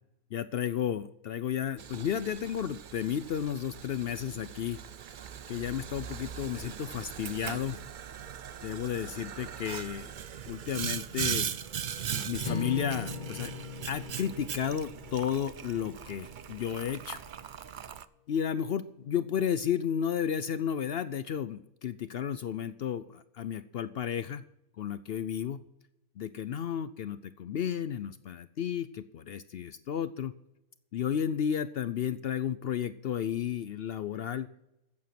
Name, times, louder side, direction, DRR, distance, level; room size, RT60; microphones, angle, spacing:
voice 1, 0.3-4.8 5.5-7.8 8.6-10.1 10.5-11.5 12.1-13.5 13.9-17.2 18.3-24.4 24.8-25.6 26.2-30.3 30.9-34.5, left 9 dB, 75° left, 14 dB, 0.5 m, -33 dB
Boiling, 1.8-18.0, right 8 dB, 85° right, 0.4 m, -39 dB
sound 1, 12.4-16.8, left 4 dB, 35° left, 0.9 m, -41 dB
14.0 x 9.7 x 5.9 m, 0.88 s
omnidirectional pair, 1.6 m